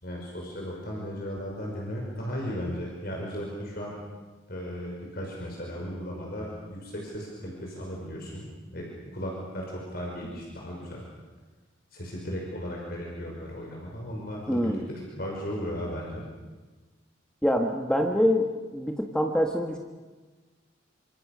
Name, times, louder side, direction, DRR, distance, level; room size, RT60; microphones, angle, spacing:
voice 1, 0.0-4.0 4.5-8.9 9.1-11.0 11.9-16.2, equal, 50° left, -2 dB, 5.7 m, -36 dB
voice 2, 14.5-14.8 17.4-18.5 18.7-19.8, equal, 5° left, 3 dB, 1.5 m, -25 dB
27.5 x 26.0 x 6.8 m, 1.3 s
head